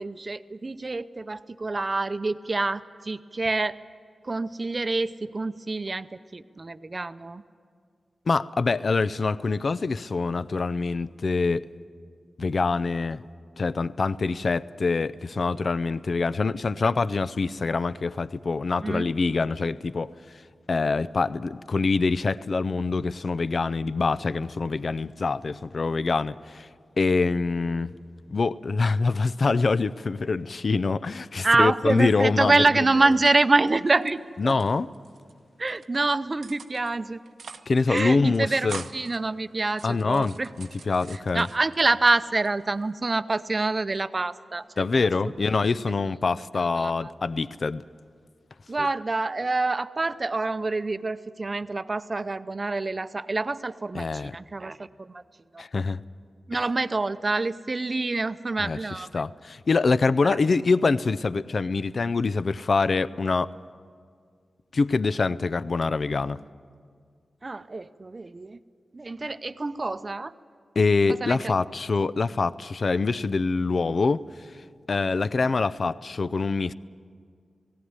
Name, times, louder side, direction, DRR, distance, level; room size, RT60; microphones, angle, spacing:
voice 1, 0.0-3.8 4.2-7.4 18.8-19.1 31.4-34.6 35.6-37.2 37.9-40.5 41.3-45.1 46.6-47.1 48.7-55.2 55.5-55.6 56.5-59.2 60.2-60.4 67.4-68.6 68.9-70.3 71.1-71.5, right 3 dB, 40° right, 13 dB, 0.6 m, -26 dB
voice 2, 8.3-11.6 12.4-13.2 13.6-20.1 20.7-26.7 27.0-27.9 28.3-32.6 34.4-34.9 37.7-38.8 39.8-41.5 44.8-47.8 48.8-48.9 53.9-54.3 55.6-56.0 58.6-58.8 59.1-63.5 64.7-66.4 70.8-74.2 74.9-76.7, left 4 dB, 55° left, 16 dB, 0.5 m, -25 dB
sound 1, 33.0-34.1 34.4-35.3 35.7-36.0 36.4-36.9 37.2-37.7 37.9-38.0 38.3-39.2 39.7-41.9 42.3-42.9, right 5 dB, 90° right, 0.8 m, -44 dB
18.0 x 17.0 x 9.6 m, 2.1 s
wide cardioid pair, 75°, 0 cm